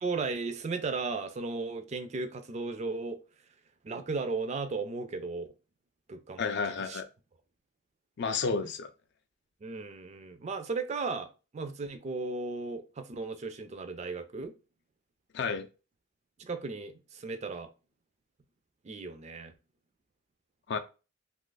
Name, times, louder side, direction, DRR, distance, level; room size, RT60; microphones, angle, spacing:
voice 1, 0.0-3.2 3.8-5.5 6.1-7.0 8.6-8.7 9.6-14.5 16.4-17.7 18.8-19.5, right 3 dB, 30° right, 0.3 m, -36 dB
voice 2, 6.4-7.1 8.2-8.9 15.3-15.7 20.7-20.8, left 5 dB, 55° left, 0.4 m, -31 dB
2.8 x 2.4 x 3.8 m
head